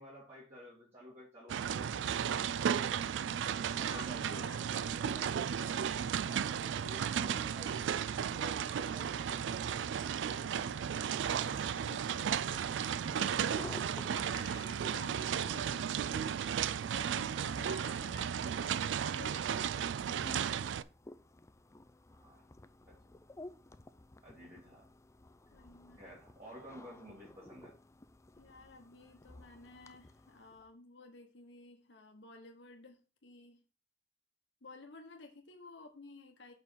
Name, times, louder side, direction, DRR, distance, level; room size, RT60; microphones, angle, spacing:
voice 1, 0.0-2.2 2.6-2.9 3.7-5.9 6.3-9.9 10.3-10.8 22.1-22.4 22.9-23.1 24.2-24.9 26.0-27.8, equal, 35° right, -8 dB, 2.5 m, -53 dB
sound 1, 1.5-20.8, right 8 dB, 80° right, 0.3 m, -34 dB
voice 2, 3.8-4.6 10.4-10.7 11.2-13.8 14.0-19.8 25.5-26.0 28.4-33.6 34.6-36.5, left 3 dB, 75° left, 4 dB, 1.0 m, -53 dB
sound 2, 11.4-30.7, left 2 dB, 15° left, 0.4 m, -55 dB
5.5 x 4.9 x 5.0 m, 0.35 s
head